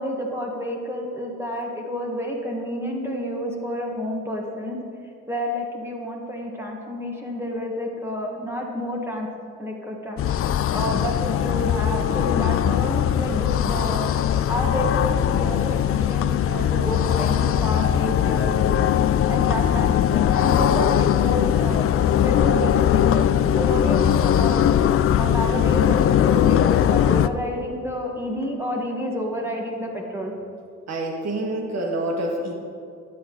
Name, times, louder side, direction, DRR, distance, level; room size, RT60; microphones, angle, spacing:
voice 1, 0.0-4.8 5.3-9.3 9.6-10.2 10.7-14.0 14.5-18.6 19.3-21.9 22.2-23.3 23.6-24.6 25.2-30.3, equal, 10° right, -1 dB, 1.6 m, -29 dB
sound 1, 10.2-27.3, left 10 dB, 50° left, 0.4 m, -20 dB
voice 2, 30.9-32.5, right 1 dB, 60° right, 1 dB, 2.0 m, -27 dB
12.5 x 9.3 x 3.9 m, 2.4 s
cardioid pair, 90°, 30 cm